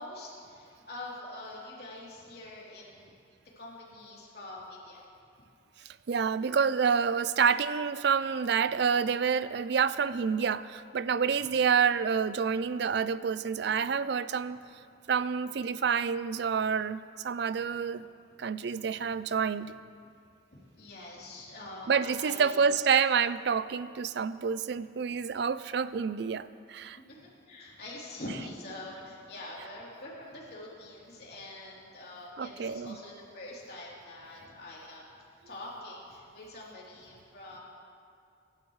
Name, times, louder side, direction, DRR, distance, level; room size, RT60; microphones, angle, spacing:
voice 1, 0.0-3.2 3.5-5.0 20.5-22.6 27.1-35.2 35.4-37.6, left 1 dB, 55° left, -5 dB, 3.4 m, -44 dB
voice 2, 6.1-14.6 15.1-18.0 18.4-19.8 21.9-27.0 32.4-32.9, right 6 dB, 60° right, 15 dB, 0.4 m, -28 dB
24.0 x 11.5 x 3.2 m, 2.4 s
head